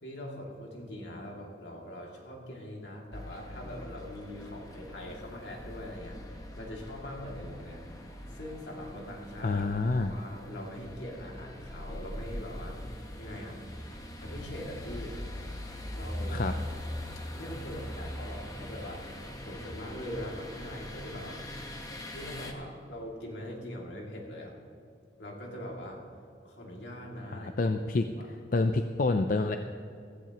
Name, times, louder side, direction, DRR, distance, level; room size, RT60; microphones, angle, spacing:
voice 1, 0.0-6.2 6.6-7.8 8.3-9.7 9.9-12.8 13.2-13.6 14.2-15.2 15.9-16.4 17.3-21.4 22.1-24.5 25.2-26.0 26.4-27.5 28.0-28.3, left 1 dB, 75° left, -1 dB, 2.5 m, -42 dB
sound 1, 3.1-22.5, left 1 dB, 20° left, 1.0 m, -42 dB
voice 2, 9.4-10.1 16.3-16.6 27.3-29.6, left 3 dB, 45° left, 7 dB, 0.4 m, -28 dB
16.0 x 15.0 x 3.0 m, 2.5 s
head